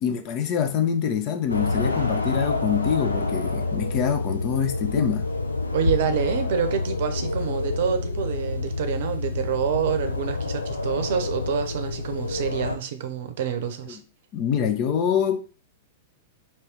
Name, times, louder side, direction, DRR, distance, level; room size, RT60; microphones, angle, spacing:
voice 1, 0.0-5.3 13.9-14.0 14.3-15.4, left 8 dB, 40° left, 0.6 m, -25 dB
sound 1, 1.5-12.8, left 3 dB, 85° left, 0.5 m, -27 dB
voice 2, 5.7-14.0, right 8 dB, 55° right, 0.6 m, -27 dB
3.2 x 3.0 x 4.5 m
figure-of-eight pair, 100°, 0 cm